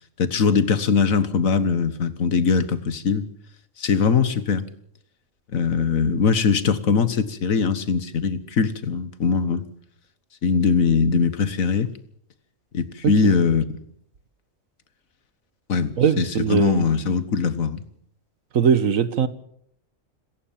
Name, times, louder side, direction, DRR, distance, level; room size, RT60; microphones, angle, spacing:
voice 1, 0.2-3.2 3.8-4.6 5.5-9.6 10.4-11.9 12.7-13.6 15.7-17.8, left 5 dB, 85° left, 1.8 m, -21 dB
voice 2, 16.0-16.9 18.5-19.3, right 7 dB, 80° right, 1.6 m, -20 dB
26.5 x 14.5 x 7.3 m
omnidirectional pair, 1.4 m